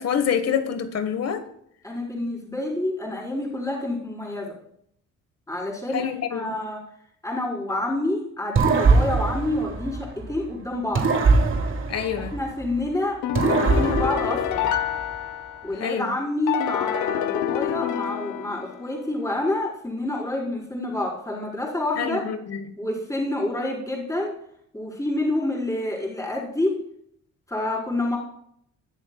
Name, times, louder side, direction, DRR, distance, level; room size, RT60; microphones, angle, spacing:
voice 1, 0.0-1.5 5.9-6.6 11.9-12.4 15.8-16.1 22.0-22.6, left 7 dB, 55° left, 1.2 m, -26 dB
voice 2, 1.8-4.5 5.5-6.8 7.2-11.0 12.3-13.2 13.5-14.7 15.6-22.2 22.8-24.3 24.7-26.7 27.5-28.2, left 1 dB, 10° left, 4.3 m, -28 dB
sound 1, 8.6-10.4 11.0-12.8 13.3-15.1, right 4 dB, 40° right, 1.4 m, -22 dB
sound 2, 13.2-15.8 16.5-18.9, left 11 dB, 90° left, 0.7 m, -27 dB
20.5 x 7.2 x 2.3 m
cardioid pair, 90°, 30 cm